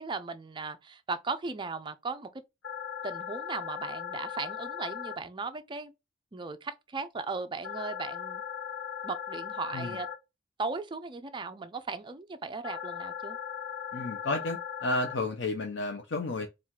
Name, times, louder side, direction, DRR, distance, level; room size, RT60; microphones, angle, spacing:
voice 1, 0.0-2.3 3.0-5.9 6.3-8.4 9.0-10.1 10.6-13.4, right 4 dB, 25° right, 0.4 m, -37 dB
sound 1, 2.6-5.1 7.6-10.1 12.6-15.1, left 8 dB, 85° left, 1.0 m, -38 dB
voice 2, 13.9-16.5, left 2 dB, 70° left, 0.6 m, -32 dB
4.5 x 2.4 x 3.6 m
head